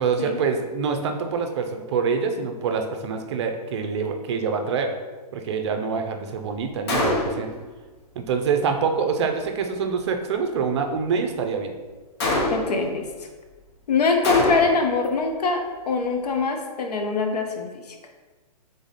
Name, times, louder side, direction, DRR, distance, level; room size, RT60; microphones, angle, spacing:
voice 1, 0.0-4.9 5.3-7.5 8.1-11.7, right 5 dB, 45° right, 5 dB, 0.5 m, -25 dB
Gunshot gunfire, 6.9-7.6 12.2-12.9 14.2-14.9, left 2 dB, 40° left, 0.9 m, -24 dB
voice 2, 12.5-13.1 13.9-18.0, left 4 dB, 75° left, 4 dB, 0.8 m, -23 dB
3.7 x 3.4 x 4.0 m, 1.3 s
hypercardioid pair, 150°, 21 cm